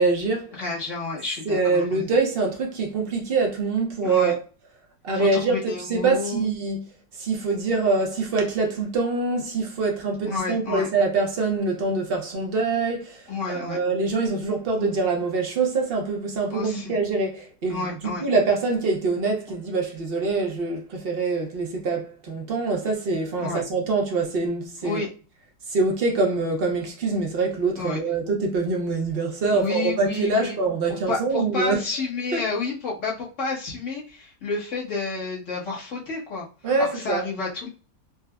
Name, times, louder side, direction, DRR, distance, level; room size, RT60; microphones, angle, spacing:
voice 1, 0.0-0.5 1.5-4.4 5.0-6.8 7.2-13.2 13.5-17.8 18.2-25.0 25.7-31.8 32.3-32.4 36.6-37.2, right 3 dB, 50° right, 0.7 m, -24 dB
voice 2, 0.6-2.0 4.0-4.3 5.1-6.4 10.3-10.9 13.3-13.8 16.5-16.9 17.7-18.3 23.4-23.6 24.8-25.1 27.8-28.0 29.5-30.6 30.9-36.4 36.8-37.7, left 3 dB, 50° left, 1.4 m, -30 dB
4.6 x 2.1 x 2.2 m
omnidirectional pair, 1.7 m